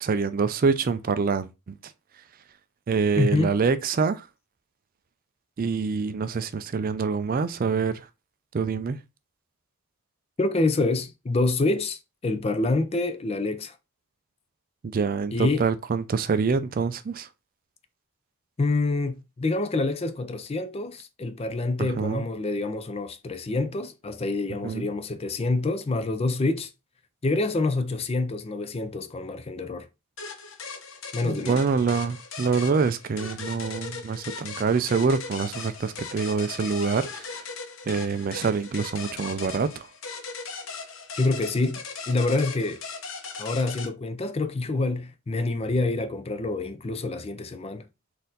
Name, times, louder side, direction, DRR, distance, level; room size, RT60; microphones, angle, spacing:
voice 1, 0.0-1.9 2.9-4.3 5.6-8.1 8.5-9.0 14.8-17.3 21.8-22.3 24.6-24.9 31.2-37.4 37.9-39.9, right 5 dB, 40° right, 0.3 m, -26 dB
voice 2, 3.2-3.5 10.4-13.8 15.3-15.7 18.6-26.7 27.2-29.9 31.1-31.6 41.2-42.8 43.4-47.9, left 2 dB, 25° left, 0.4 m, -27 dB
sound 1, 30.2-43.9, left 4 dB, 60° left, 0.8 m, -38 dB
4.3 x 2.6 x 3.8 m
head